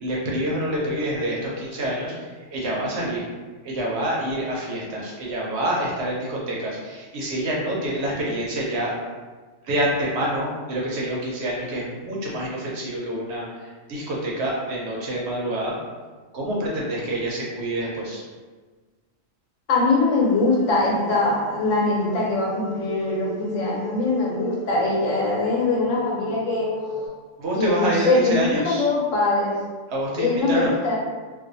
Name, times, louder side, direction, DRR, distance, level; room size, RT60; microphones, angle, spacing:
voice 1, 0.0-3.2 3.6-8.9 9.6-13.4 13.9-15.8 16.3-18.2 27.4-28.8 29.9-30.8, right 1 dB, 65° right, -4 dB, 0.7 m, -27 dB
voice 2, 19.7-26.7 27.6-29.6 30.1-31.0, left 3 dB, 75° left, -4 dB, 1.0 m, -22 dB
sound 1, 20.2-27.1, left 2 dB, 30° left, 0.5 m, -37 dB
2.4 x 2.2 x 2.6 m, 1.4 s
omnidirectional pair, 1.3 m